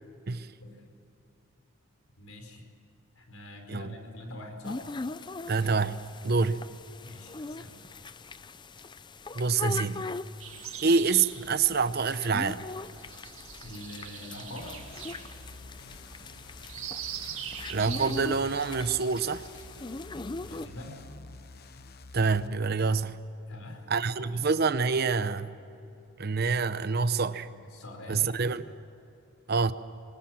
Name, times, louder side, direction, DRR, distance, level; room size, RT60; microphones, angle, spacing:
voice 1, 2.2-2.7 3.1-4.8 6.3-6.6 7.0-7.8 13.6-14.7 20.4-21.0 23.5-24.4 27.7-28.4, left 1 dB, 85° left, 4 dB, 4.5 m, -44 dB
sound 1, 4.6-20.7, left 3 dB, 20° left, 0.5 m, -41 dB
voice 2, 5.5-6.6 9.3-10.0 10.8-12.6 17.7-19.4 22.1-23.2 23.9-25.6 26.2-27.5 28.1-28.6 29.5-29.7, right 4 dB, 45° right, 12 dB, 0.7 m, -26 dB
sound 2, 10.4-21.2, right 9 dB, 75° right, 2.1 m, -44 dB
sound 3, 14.6-22.5, left 3 dB, 50° left, 1.0 m, -49 dB
23.5 x 20.0 x 7.4 m, 2.8 s
head